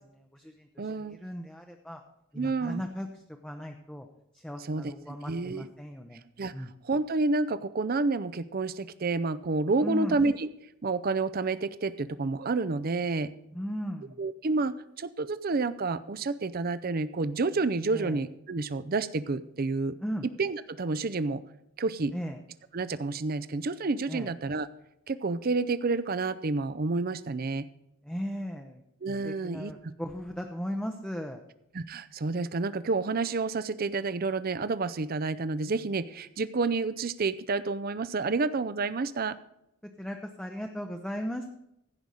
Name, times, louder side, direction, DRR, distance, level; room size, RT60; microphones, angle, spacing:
voice 1, 0.0-2.0 2.3-3.1 3.4-4.1 4.3-6.2 6.5-6.7 9.8-10.2 13.5-14.2 17.9-18.2 20.0-20.3 22.1-22.4 24.1-24.3 28.0-28.8 29.2-31.4 40.0-41.5, equal, 5° left, 3 dB, 0.6 m, -37 dB
voice 2, 0.8-1.2 2.3-2.8 4.6-4.9 5.3-5.7 6.4-6.5 6.8-10.5 10.8-13.3 14.2-19.9 20.4-21.4 21.8-22.1 22.7-24.7 25.1-27.7 29.0-29.7 31.7-39.4, right 3 dB, 45° right, 14 dB, 0.5 m, -29 dB
15.5 x 5.3 x 6.3 m, 0.83 s
head